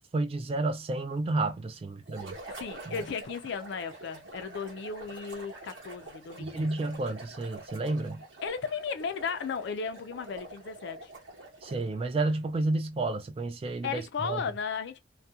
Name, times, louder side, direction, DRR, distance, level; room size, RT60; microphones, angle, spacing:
voice 1, 0.1-2.4 2.9-3.1 6.4-8.2 11.6-14.4, right 2 dB, 30° right, 0.3 m, -31 dB
sound 1, 2.1-11.9, right 2 dB, 90° right, 1.0 m, -46 dB
voice 2, 2.5-6.7 8.4-11.1 13.8-15.0, left 5 dB, 65° left, 0.4 m, -35 dB
2.3 x 2.2 x 2.7 m
head